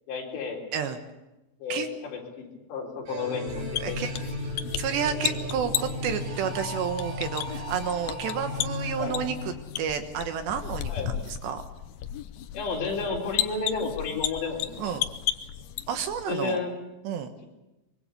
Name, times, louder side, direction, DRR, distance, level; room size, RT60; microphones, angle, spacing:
voice 1, 0.1-0.6 1.6-4.3 9.0-9.2 10.9-11.2 12.5-14.9 16.3-16.8, left 4 dB, 65° left, -1 dB, 6.2 m, -32 dB
sound 1, 3.1-10.1, left 1 dB, 90° right, 7.9 m, -35 dB
sound 2, 3.5-16.2, left 12 dB, 85° left, 2.1 m, -34 dB
voice 2, 3.8-4.1 4.8-11.6 14.8-15.0 15.9-16.6 17.0-17.3, right 7 dB, 70° right, 7 dB, 3.2 m, -31 dB
24.5 x 22.5 x 6.8 m, 1.0 s
omnidirectional pair, 5.6 m